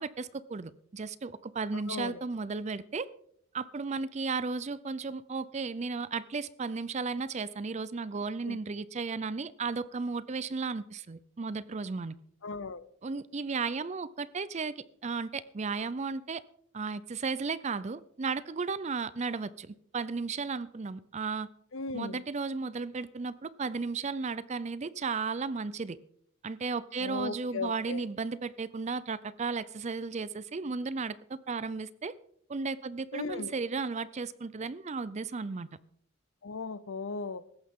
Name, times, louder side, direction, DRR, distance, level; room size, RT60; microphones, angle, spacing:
voice 1, 0.0-3.1 3.5-12.2 13.0-16.4 16.7-21.5 21.9-26.0 26.4-32.1 32.5-35.7, right 4 dB, 35° right, 0.5 m, -34 dB
voice 2, 1.7-2.2 8.4-8.6 12.4-12.9 21.7-22.2 27.0-28.0 33.1-33.5 36.4-37.4, left 4 dB, 65° left, 0.7 m, -37 dB
16.5 x 14.0 x 3.7 m
head